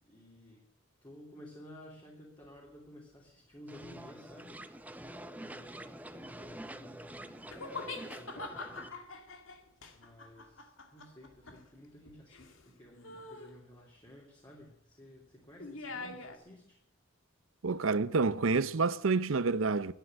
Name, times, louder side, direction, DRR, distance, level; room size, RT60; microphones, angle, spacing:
voice 1, 0.0-0.6 1.0-4.6 5.4-9.0 9.9-16.8, left 1 dB, 25° left, 3.1 m, -54 dB
sound 1, 3.7-8.9, right 1 dB, 10° right, 0.7 m, -47 dB
sound 2, 7.5-12.7 13.0-13.6 15.6-16.4, left 3 dB, 90° left, 2.0 m, -44 dB
voice 2, 17.6-19.9, right 4 dB, 90° right, 0.7 m, -28 dB
11.5 x 11.5 x 8.8 m
head